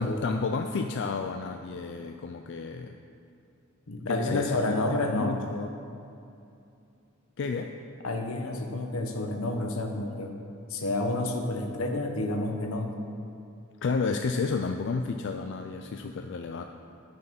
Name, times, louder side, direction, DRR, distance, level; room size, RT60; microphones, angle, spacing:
voice 1, 0.0-3.0 4.1-4.8 5.1-5.7 7.4-7.7 13.8-16.6, left 4 dB, 55° left, 5 dB, 0.4 m, -31 dB
voice 2, 3.9-5.4 8.0-10.3 10.7-13.0, left 2 dB, 80° left, 3 dB, 1.0 m, -29 dB
9.0 x 6.8 x 5.9 m, 2.6 s
head